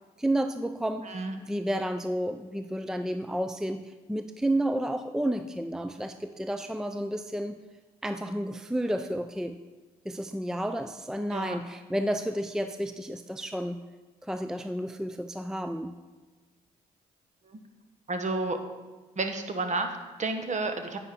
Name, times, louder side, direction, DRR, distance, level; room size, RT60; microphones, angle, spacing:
voice 1, 0.2-7.6 8.0-9.6 10.0-13.8 14.2-15.9, right 1 dB, 5° right, 9 dB, 0.5 m, -31 dB
voice 2, 1.0-1.4 11.3-11.6 17.5-17.6 18.1-18.6 19.2-21.0, right 3 dB, 45° right, 6 dB, 1.4 m, -31 dB
9.6 x 9.6 x 4.3 m, 1.3 s
supercardioid pair, 65°, 18 cm